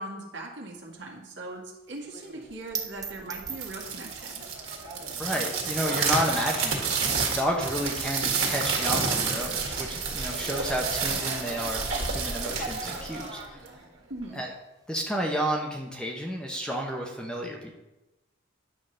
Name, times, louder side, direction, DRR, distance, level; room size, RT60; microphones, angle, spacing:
voice 1, 0.0-4.4 14.1-14.4, right 2 dB, 60° right, -1 dB, 1.8 m, -40 dB
sound 1, 0.7-9.6 9.9-17.1, right 7 dB, 20° right, 0.6 m, -44 dB
sound 2, 3.5-13.8, right 5 dB, 85° right, 1.8 m, -30 dB
voice 2, 5.2-13.6 14.3-14.5 14.9-17.8, equal, 5° left, 0 dB, 0.9 m, -31 dB
10.0 x 3.9 x 6.4 m, 1.0 s
head